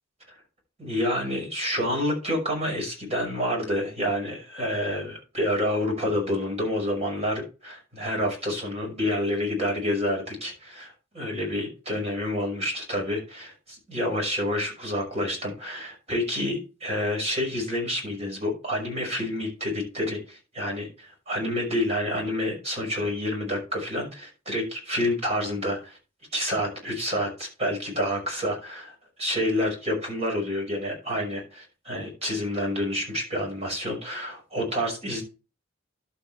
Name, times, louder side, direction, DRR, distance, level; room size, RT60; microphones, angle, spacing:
voice 1, 0.8-26.0 26.3-35.2, left 1 dB, 35° right, 1 dB, 5.6 m, -28 dB
11.5 x 8.4 x 3.4 m, 0.32 s
head